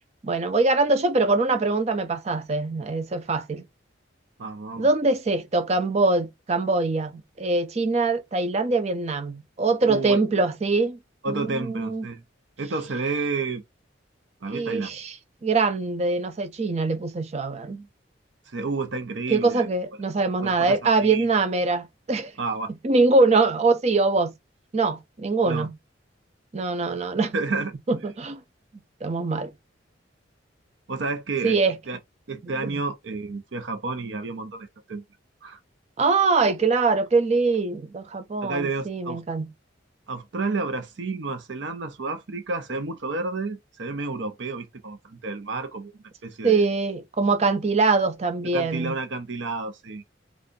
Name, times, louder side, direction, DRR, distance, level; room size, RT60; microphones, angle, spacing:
voice 1, 0.2-3.6 4.8-11.0 11.3-12.1 14.5-15.2 15.4-17.9 19.3-22.3 22.8-24.3 24.7-25.8 26.5-27.3 27.9-28.4 29.0-29.5 31.4-31.8 32.6-32.8 36.0-39.5 46.4-49.0, right 3 dB, 35° right, 0.5 m, -23 dB
voice 2, 4.4-4.9 9.8-10.2 11.2-12.2 12.6-13.6 14.4-15.0 18.5-19.7 20.4-21.3 22.4-22.7 25.4-25.7 27.3-27.7 30.9-31.6 31.9-32.0 32.3-35.0 35.4-35.6 38.4-39.2 40.1-46.6 48.5-50.0, right 3 dB, 75° right, 0.7 m, -30 dB
2.6 x 2.5 x 3.7 m
head